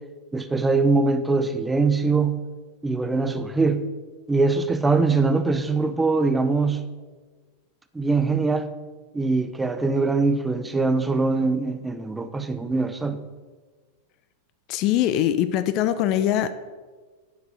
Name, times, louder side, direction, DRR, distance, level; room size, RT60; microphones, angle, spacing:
voice 1, 0.3-2.4 2.8-3.8 4.3-6.8 7.9-8.7 9.1-13.2, right 3 dB, 10° right, 9 dB, 0.7 m, -22 dB
voice 2, 14.7-16.5, left 11 dB, 40° left, 12 dB, 0.6 m, -22 dB
10.0 x 7.1 x 6.3 m, 1.4 s
figure-of-eight pair, 90°, 0 cm